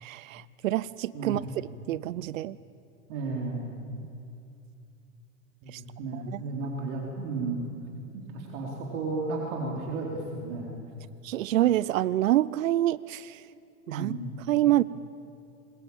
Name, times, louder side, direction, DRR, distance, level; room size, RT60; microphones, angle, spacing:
voice 1, 0.0-1.4 1.9-2.6 5.7-5.8 6.1-6.4 11.2-13.4 13.9-14.1 14.5-14.8, right 14 dB, 70° right, 20 dB, 0.6 m, -26 dB
voice 2, 3.1-3.7 5.6-7.6 8.1-10.7 13.9-14.4, right 3 dB, 55° right, -1 dB, 4.2 m, -33 dB
26.5 x 21.5 x 7.3 m, 2.5 s
hypercardioid pair, 95°, 41 cm